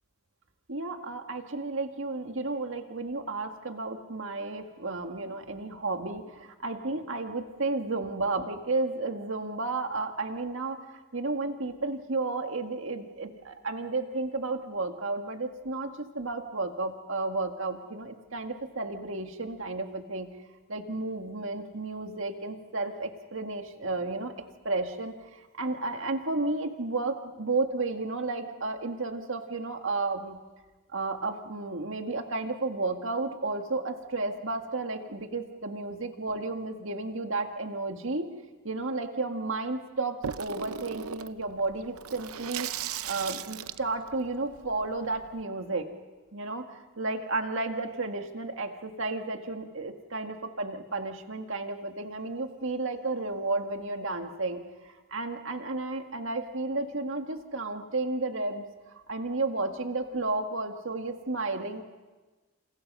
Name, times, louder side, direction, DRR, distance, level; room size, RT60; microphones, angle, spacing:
voice 1, 0.7-10.8 11.1-20.3 20.7-24.3 24.6-30.4 30.9-38.3 38.6-45.9 46.3-58.7 58.9-61.8, right 3 dB, 60° right, 5 dB, 1.9 m, -32 dB
Water tap faucet / Sink (filling or washing), 40.2-45.4, right 8 dB, 85° right, 0.7 m, -38 dB
29.5 x 28.5 x 5.5 m, 1.2 s
head